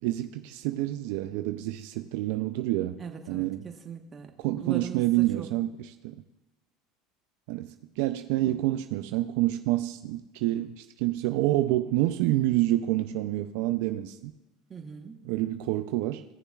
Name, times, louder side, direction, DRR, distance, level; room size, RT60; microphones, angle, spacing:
voice 1, 0.0-3.0 3.3-3.6 4.4-6.2 7.5-14.3 15.2-16.2, right 15 dB, 75° right, 8 dB, 0.4 m, -28 dB
voice 2, 3.0-4.3 4.6-5.5 14.7-15.2, right 6 dB, 30° right, 4 dB, 1.1 m, -40 dB
16.0 x 6.7 x 2.3 m, 1.0 s
supercardioid pair, 110°, 0 cm